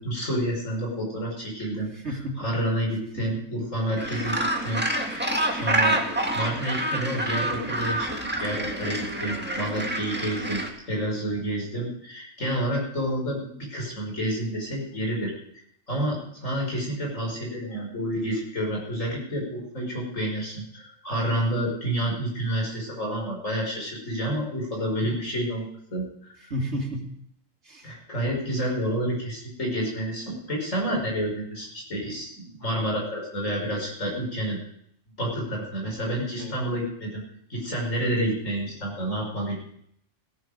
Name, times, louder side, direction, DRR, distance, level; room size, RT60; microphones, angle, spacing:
voice 1, 0.0-6.0 6.3-15.6 15.9-26.0 27.8-34.6 35.2-37.2 37.5-39.5, right 1 dB, 85° left, -1 dB, 5.9 m, -29 dB
voice 2, 1.9-2.4 3.2-3.4 26.5-27.1 27.6-27.9 36.4-36.6, equal, 60° right, 0 dB, 3.1 m, -32 dB
Gull seagull, 4.0-10.7, right 1 dB, 10° right, 1.7 m, -27 dB
16.5 x 14.0 x 5.1 m, 0.70 s
omnidirectional pair, 1.3 m